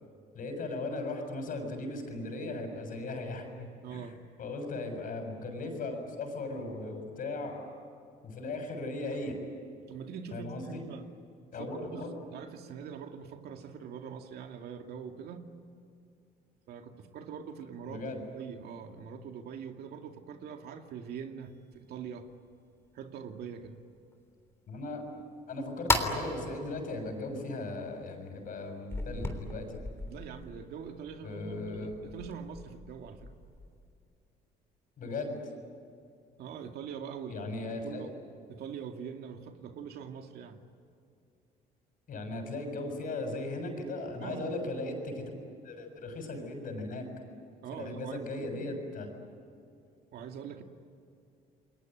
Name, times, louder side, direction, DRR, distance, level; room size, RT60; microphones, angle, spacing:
voice 1, 0.3-4.1 4.4-7.7 8.2-9.4 10.3-10.8 11.5-12.1 17.9-18.2 24.7-25.0 25.5-29.8 31.2-32.0 35.0-35.4 37.3-38.1 42.1-45.3 45.6-47.1 47.7-49.1, left 2 dB, 55° left, 5 dB, 6.9 m, -37 dB
voice 2, 3.8-4.2 9.9-11.0 11.6-15.5 16.7-22.3 22.9-23.8 30.1-33.3 36.4-37.6 37.8-38.1 38.5-40.6 44.2-44.6 47.6-48.6 50.1-50.6, right 7 dB, 70° right, 5 dB, 2.4 m, -43 dB
sound 1, 21.4-21.8 22.3-22.4 22.8-22.9 23.4-24.1 24.5-24.6 25.1-25.2 25.6-26.8 27.3-27.4 27.9-28.0 28.4-28.5 28.9-33.9, left 2 dB, 15° left, 3.5 m, -36 dB
29.5 x 22.0 x 9.2 m, 2.4 s
cardioid pair, 110°, 17 cm